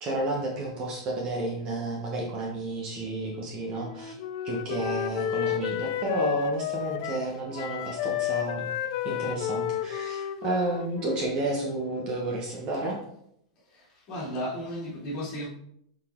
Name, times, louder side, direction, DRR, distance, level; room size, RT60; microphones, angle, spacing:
voice 1, 0.0-4.1 4.4-8.7 9.0-13.0, right 2 dB, 25° right, -1 dB, 1.0 m, -31 dB
Wind instrument woodwind instrument, 3.7-7.3 7.5-11.4, left 9 dB, 45° left, 0.5 m, -31 dB
voice 2, 13.7-15.5, equal, 30° left, -6 dB, 2.6 m, -34 dB
7.3 x 4.1 x 3.7 m, 0.72 s
supercardioid pair, 170°, 3 cm